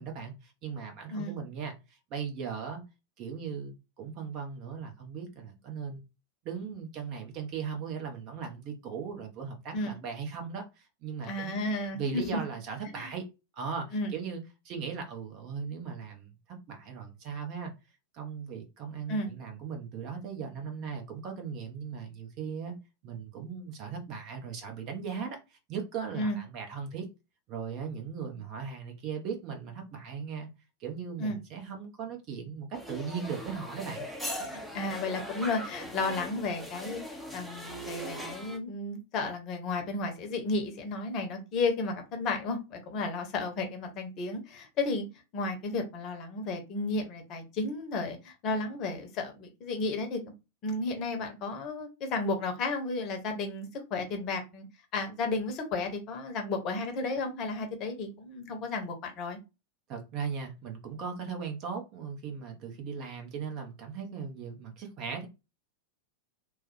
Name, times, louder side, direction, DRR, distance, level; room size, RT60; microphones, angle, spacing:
voice 1, 0.0-1.7 2.1-2.8 3.2-6.0 6.4-11.7 11.9-13.3 13.5-16.3 16.7-17.7 18.1-22.7 23.0-27.1 27.5-30.5 30.8-34.0 59.9-65.3, right 6 dB, 40° right, 0.8 m, -38 dB
voice 2, 1.1-1.4 9.7-9.9 11.3-12.4 12.9-13.1 13.9-14.1 19.1-19.3 26.1-26.4 31.2-31.4 34.7-45.0 45.3-50.2 50.6-54.6 54.9-59.4, left 3 dB, 35° left, 0.8 m, -33 dB
sound 1, 32.7-38.6, equal, 5° right, 0.6 m, -40 dB
3.2 x 2.2 x 3.1 m
figure-of-eight pair, 90°, 0 cm